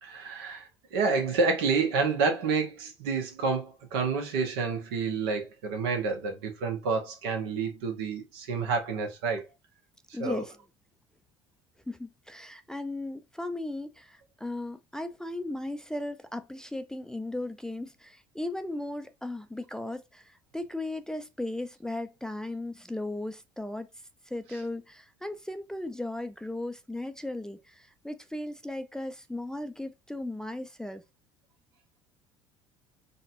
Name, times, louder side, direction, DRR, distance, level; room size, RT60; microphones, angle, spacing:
voice 1, 0.0-9.4 10.2-10.4, right 4 dB, 75° right, 0.9 m, -29 dB
voice 2, 10.1-10.5 11.9-23.9 24.3-31.0, left 1 dB, 5° left, 0.4 m, -36 dB
4.0 x 2.2 x 2.5 m
hypercardioid pair, 65°, 13 cm